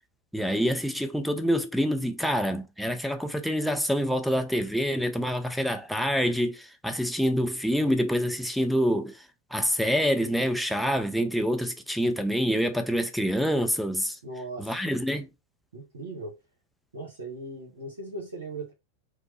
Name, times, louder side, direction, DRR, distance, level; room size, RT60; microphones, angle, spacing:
voice 1, 0.3-9.2 9.5-14.2 14.6-15.3, equal, ahead, 0.4 m, -26 dB
voice 2, 14.2-14.8 15.7-16.3 16.9-18.7, right 2 dB, 70° right, 0.8 m, -38 dB
3.0 x 2.0 x 3.1 m
figure-of-eight pair, 90°, 0 cm